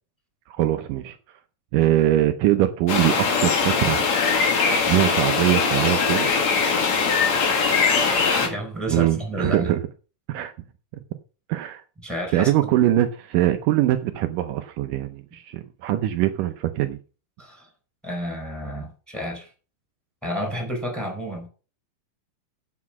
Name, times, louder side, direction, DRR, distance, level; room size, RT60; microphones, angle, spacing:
voice 1, 0.6-1.2 1.7-4.0 4.9-6.3 8.9-9.8 10.3-10.5 10.9-11.0 11.5-11.8 12.3-17.0, right 13 dB, 80° right, 8 dB, 2.3 m, -22 dB
sound 1, 2.9-8.5, left 5 dB, 55° left, 3.2 m, -21 dB
voice 2, 8.0-9.7 12.0-12.7 17.4-17.7 18.0-19.5 20.2-21.5, equal, ahead, 3 dB, 4.3 m, -31 dB
8.4 x 8.0 x 6.1 m, 0.36 s
omnidirectional pair, 3.9 m